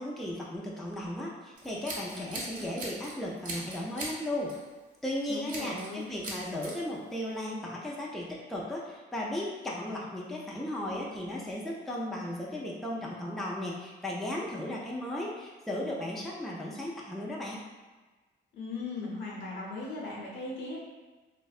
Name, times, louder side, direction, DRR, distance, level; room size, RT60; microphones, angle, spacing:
voice 1, 0.0-4.5 5.0-17.6, left 1 dB, ahead, -4 dB, 0.4 m, -36 dB
Scissors, 1.6-3.1 3.4-4.2 4.5-4.7 5.5-5.9 6.2-6.7, right 2 dB, 45° right, 0.7 m, -39 dB
voice 2, 5.3-6.1 18.5-20.8, left 3 dB, 70° left, -4 dB, 0.8 m, -38 dB
2.6 x 2.1 x 2.4 m, 1.3 s
cardioid pair, 90°, 20 cm